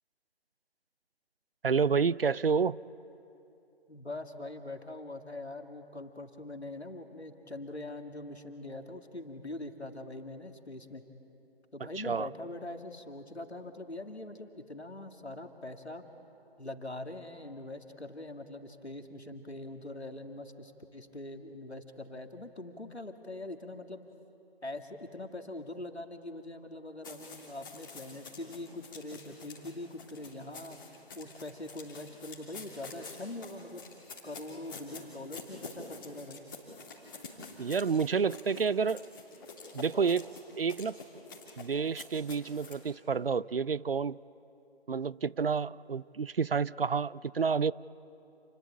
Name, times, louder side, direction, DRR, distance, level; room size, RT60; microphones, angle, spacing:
voice 1, 1.6-2.8 12.0-12.3 37.6-39.0 39.7-40.3 40.6-41.0 41.6-44.2 44.9-47.7, right 5 dB, 60° right, 21 dB, 0.5 m, -29 dB
voice 2, 3.9-11.0 11.7-16.1 16.6-24.0 24.6-30.8 31.2-33.8 34.2-36.4, left 2 dB, 90° left, 5 dB, 2.4 m, -43 dB
sound 1, 27.0-42.8, left 3 dB, 20° left, 3.1 m, -48 dB
28.5 x 21.5 x 8.7 m, 2.8 s
figure-of-eight pair, 160°, 32 cm